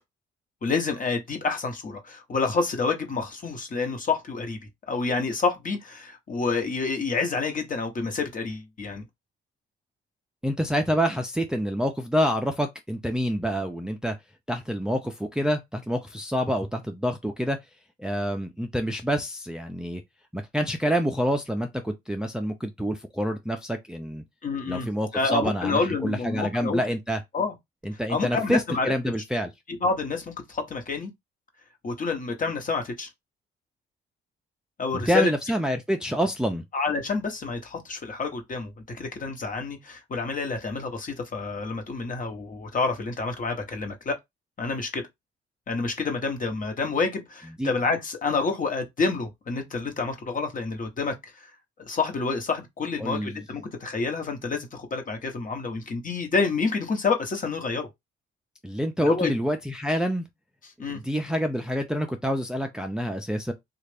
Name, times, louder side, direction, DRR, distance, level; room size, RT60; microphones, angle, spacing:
voice 1, 0.6-4.6 4.9-9.0 24.4-26.8 27.3-27.5 28.1-28.9 29.8-31.1 31.8-33.1 34.8-35.3 36.7-44.2 44.6-45.0 45.7-51.1 51.8-57.9 59.0-59.3 60.8-61.0, left 4 dB, 40° left, 1.1 m, -28 dB
voice 2, 10.4-14.2 14.5-17.6 18.0-20.0 20.3-24.2 24.7-27.2 27.8-29.5 34.9-36.6 47.6-47.7 53.0-53.4 58.6-60.2 60.9-63.5, equal, 5° right, 0.5 m, -27 dB
3.2 x 2.4 x 3.3 m
cardioid pair, 90°, 20 cm